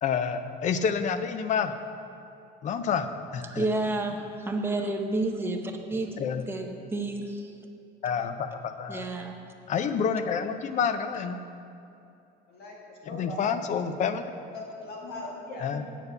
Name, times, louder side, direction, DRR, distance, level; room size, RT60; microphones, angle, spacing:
voice 1, 0.0-1.7 2.6-3.7 6.2-6.4 8.0-9.0 9.7-11.4 13.1-14.2 15.6-15.8, left 6 dB, 40° left, 10 dB, 0.5 m, -28 dB
voice 2, 3.4-7.5 8.9-9.4, right 2 dB, 10° right, 3 dB, 0.7 m, -30 dB
voice 3, 12.5-13.6 14.5-15.8, left 2 dB, 60° left, -3 dB, 2.3 m, -40 dB
8.2 x 6.8 x 6.9 m, 2.7 s
cardioid pair, 155°, 19 cm